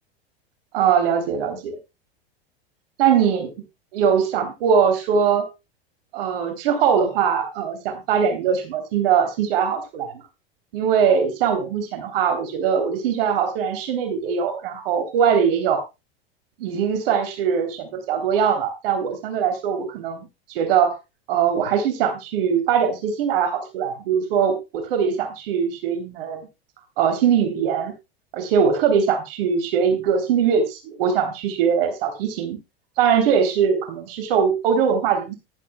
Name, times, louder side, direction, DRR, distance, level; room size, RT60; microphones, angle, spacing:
voice 1, 0.7-1.8 3.0-3.5 3.9-5.4 6.1-10.1 10.7-15.8 16.6-20.9 21.3-26.5 27.0-27.9 28.3-32.6 33.0-35.4, right 7 dB, 65° right, 6 dB, 3.4 m, -21 dB
14.5 x 12.5 x 2.3 m, 0.26 s
hypercardioid pair, 100°, 30 cm